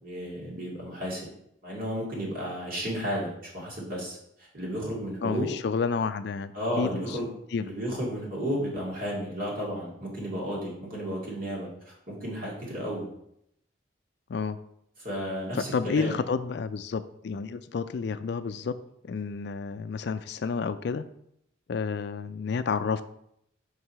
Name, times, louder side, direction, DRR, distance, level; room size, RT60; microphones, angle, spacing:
voice 1, 0.0-1.3 1.6-5.5 6.5-7.3 7.6-13.0 15.0-16.2, equal, 45° right, -4 dB, 2.3 m, -33 dB
voice 2, 5.2-7.2 7.5-7.6 14.3-14.6 15.7-18.8 19.0-21.0 21.7-23.0, left 5 dB, 55° left, 12 dB, 0.3 m, -30 dB
5.4 x 4.8 x 5.6 m, 0.75 s
head